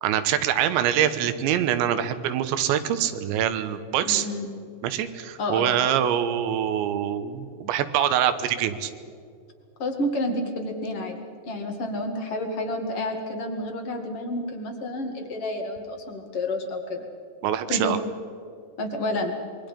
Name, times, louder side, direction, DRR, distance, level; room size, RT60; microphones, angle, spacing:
voice 1, 0.0-4.3 4.8-8.9 17.4-18.0, right 10 dB, 80° right, 11 dB, 3.4 m, -24 dB
voice 2, 4.0-4.5 5.4-5.8 9.8-17.0 17.7-18.0 18.8-19.3, left 1 dB, 45° left, 4 dB, 2.2 m, -30 dB
26.5 x 23.0 x 5.3 m, 2.4 s
omnidirectional pair, 5.2 m